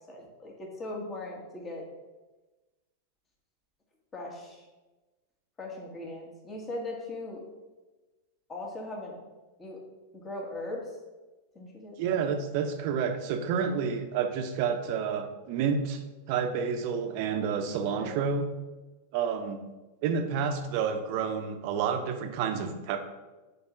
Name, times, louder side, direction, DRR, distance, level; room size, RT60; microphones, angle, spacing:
voice 1, 0.1-1.9 4.1-4.6 5.6-7.4 8.5-9.2 9.6-9.8 10.1-10.8 11.5-12.0 17.9-18.2, left 2 dB, 20° left, -1 dB, 1.6 m, -39 dB
voice 2, 12.0-16.0 16.3-18.4 19.1-19.6 20.0-23.0, right 6 dB, 45° right, 7 dB, 0.7 m, -29 dB
5.0 x 4.3 x 5.8 m, 1.2 s
figure-of-eight pair, 90°, 0 cm